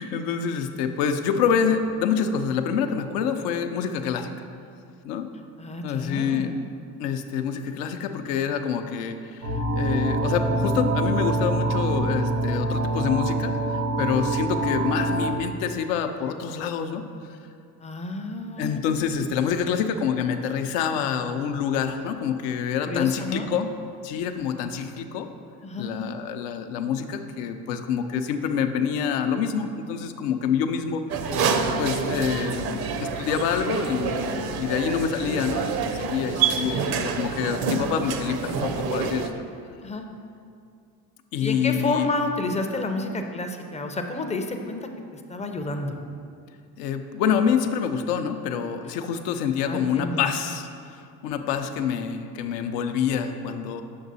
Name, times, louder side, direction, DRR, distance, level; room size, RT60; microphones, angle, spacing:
voice 1, 0.0-4.3 5.0-5.3 5.8-6.5 7.0-17.0 18.6-23.7 24.0-25.3 25.8-31.0 31.8-39.3 41.3-42.1 46.8-53.8, left 7 dB, 75° left, 7 dB, 0.6 m, -27 dB
voice 2, 5.6-6.5 17.8-18.8 22.8-23.5 25.6-26.0 39.8-40.1 41.4-44.8 45.1-45.9 49.6-50.3, left 2 dB, 15° left, 5 dB, 0.4 m, -30 dB
sound 1, 9.4-15.3, right 2 dB, 90° right, 1.2 m, -25 dB
sound 2, 31.1-39.3, right 5 dB, 50° right, 0.6 m, -27 dB
7.6 x 6.0 x 2.7 m, 2.4 s
hypercardioid pair, 65°, 48 cm